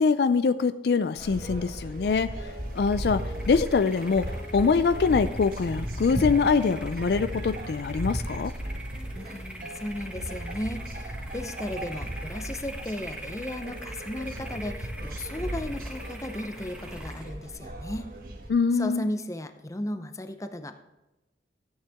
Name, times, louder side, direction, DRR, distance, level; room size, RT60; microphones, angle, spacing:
voice 1, 0.0-2.3 2.7-8.5 18.5-19.1, left 5 dB, 65° left, 12 dB, 0.4 m, -24 dB
sound 1, 1.2-18.5, right 1 dB, 55° right, 1.4 m, -36 dB
sound 2, 2.6-18.9, right 1 dB, 5° right, 1.1 m, -44 dB
voice 2, 9.2-18.1 18.7-20.8, left 1 dB, 20° left, 8 dB, 0.6 m, -35 dB
13.5 x 8.6 x 3.5 m, 0.99 s
head